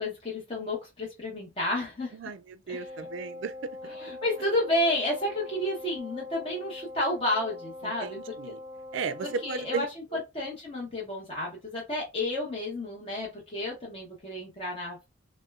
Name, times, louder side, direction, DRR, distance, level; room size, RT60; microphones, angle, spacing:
voice 1, 0.0-2.1 2.7-2.8 4.0-8.2 8.5-8.6 9.4-9.9 10.3-15.1, left 1 dB, 30° left, 0.9 m, -31 dB
voice 2, 2.1-3.7 7.8-8.6 8.9-9.9 10.1-10.2, right 5 dB, 65° right, 0.3 m, -35 dB
Wind instrument woodwind instrument, 2.7-10.0, left 2 dB, 20° right, 0.7 m, -43 dB
4.1 x 2.2 x 2.3 m
head